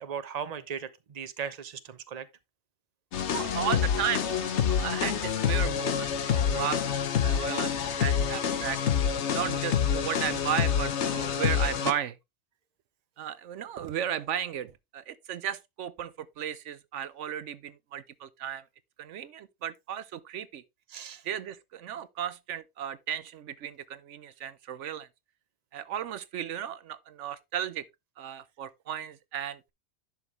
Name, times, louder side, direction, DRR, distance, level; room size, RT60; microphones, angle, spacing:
voice 1, 0.0-2.3 10.1-10.3 20.9-21.2, right 7 dB, 35° right, 0.9 m, -38 dB
sound 1, 3.1-11.9, left 8 dB, 70° left, 1.1 m, -27 dB
voice 2, 3.3-8.8 9.3-12.2 13.2-18.6 19.0-20.6 21.2-25.1 25.7-27.9 28.2-29.7, right 10 dB, 80° right, 1.0 m, -35 dB
11.0 x 6.2 x 3.2 m
omnidirectional pair, 1.2 m